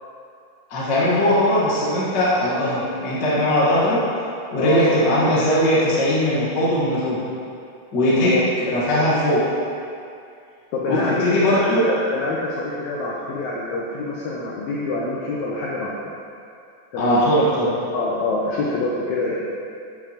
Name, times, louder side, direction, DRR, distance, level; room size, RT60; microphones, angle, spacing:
voice 1, 0.7-4.0 4.5-7.2 7.9-9.5 10.9-11.8 17.0-17.7, equal, 45° left, -8 dB, 1.5 m, -19 dB
voice 2, 10.7-11.2 11.5-15.9 16.9-17.2 17.9-19.4, left 3 dB, 70° left, -5 dB, 2.0 m, -25 dB
11.0 x 6.9 x 2.9 m, 2.5 s
omnidirectional pair, 3.8 m